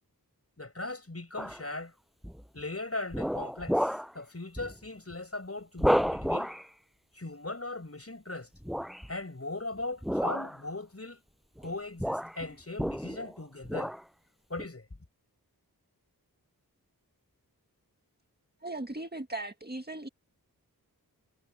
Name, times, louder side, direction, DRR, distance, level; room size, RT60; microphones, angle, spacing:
voice 1, 0.6-1.9 2.5-6.5 7.1-8.5 9.1-11.2 11.6-13.9 14.5-14.9, left 2 dB, 40° left, 6.9 m, -39 dB
sound 1, 1.4-1.7 2.2-2.6 3.1-4.2 4.6-4.7 5.1-5.2 5.8-6.7 8.6-9.1 10.0-10.7 11.6-11.7 12.0-13.3 13.6-14.1 14.6-14.7, equal, ahead, 6.6 m, -31 dB
voice 2, 18.6-20.1, right 2 dB, 25° right, 1.7 m, -38 dB
wide cardioid pair, 60°, 37 cm